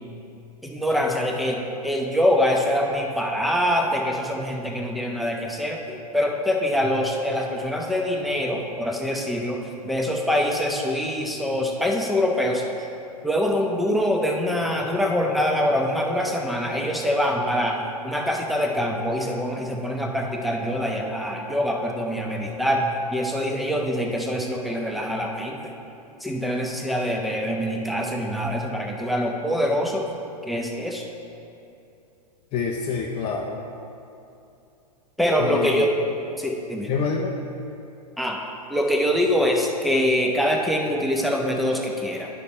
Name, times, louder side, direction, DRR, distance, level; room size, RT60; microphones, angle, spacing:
voice 1, 0.6-9.6 9.8-12.9 13.2-22.8 23.1-25.7 26.2-30.0 30.5-31.1 35.2-35.9 36.4-36.9 38.2-38.4 38.7-42.3, equal, ahead, 0 dB, 0.8 m, -24 dB
voice 2, 32.5-33.6 35.4-35.9 36.9-37.3, left 5 dB, 30° left, 0 dB, 0.6 m, -27 dB
9.6 x 5.7 x 4.3 m, 2.7 s
hypercardioid pair, 110°, 21 cm